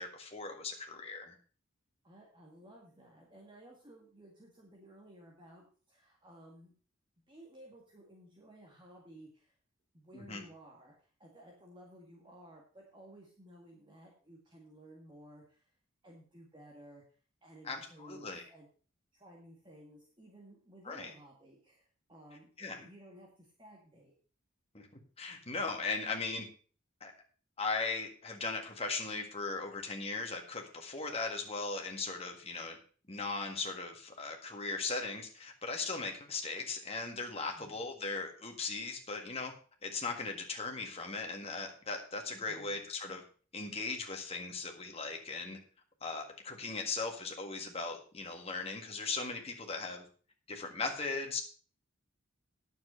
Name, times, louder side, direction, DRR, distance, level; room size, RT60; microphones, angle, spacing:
voice 1, 0.0-1.4 10.1-10.4 17.6-18.4 20.9-21.1 22.6-22.8 24.7-24.9 25.2-26.4 27.0-27.1 27.6-32.8 33.1-39.5 39.8-43.2 43.5-45.6 46.0-50.1 50.5-51.4, left 3 dB, 30° left, 2 dB, 1.8 m, -38 dB
voice 2, 2.0-6.7 7.3-9.5 9.9-15.7 16.0-17.0 17.4-18.7 19.1-24.1 37.6-37.8 42.5-42.8, right 1 dB, 25° right, -1 dB, 1.8 m, -56 dB
9.5 x 7.2 x 6.2 m, 0.41 s
head